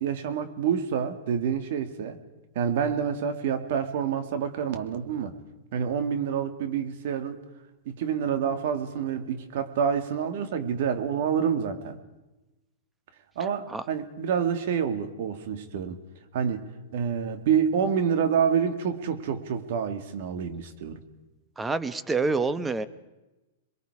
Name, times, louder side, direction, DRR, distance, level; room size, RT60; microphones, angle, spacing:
voice 1, 0.0-2.2 2.6-5.3 5.7-7.4 7.9-12.0 13.4-16.0 16.3-16.7 16.9-21.0, right 7 dB, 60° right, 8 dB, 2.3 m, -27 dB
voice 2, 21.6-22.9, right 3 dB, 10° right, 13 dB, 1.0 m, -27 dB
27.5 x 22.0 x 4.9 m, 1.0 s
hypercardioid pair, 135°, 0 cm